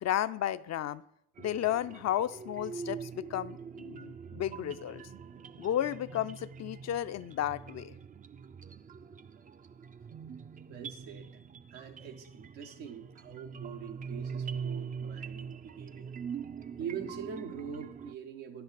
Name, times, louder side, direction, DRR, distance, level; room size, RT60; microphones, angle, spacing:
voice 1, 0.0-1.0 1.4-5.0 5.6-7.9, left 11 dB, 45° left, 14 dB, 0.4 m, -33 dB
sound 1, 1.4-18.1, right 6 dB, 20° right, 0.3 m, -43 dB
voice 2, 10.7-11.3 11.7-16.1 16.8-18.6, right 7 dB, 85° right, 3 dB, 1.0 m, -43 dB
10.0 x 6.8 x 3.9 m, 0.74 s
hypercardioid pair, 50°, 40 cm